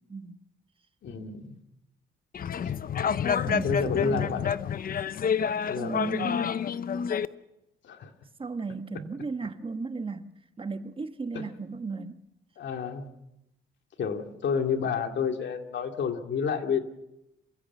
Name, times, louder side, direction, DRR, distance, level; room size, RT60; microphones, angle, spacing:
voice 1, 1.0-1.6 2.6-2.7 3.6-4.7 5.7-6.3 7.8-8.1 11.3-11.5 12.6-13.1 14.0-16.8, left 6 dB, 65° left, 2.3 m, -30 dB
sound 1, 2.3-7.3, left 7 dB, 45° left, 0.8 m, -28 dB
voice 2, 3.4-4.3 5.7-6.5 8.4-10.3 10.6-12.2, right 4 dB, 25° right, 1.4 m, -35 dB
27.0 x 15.5 x 7.2 m
cardioid pair, 90°, 20 cm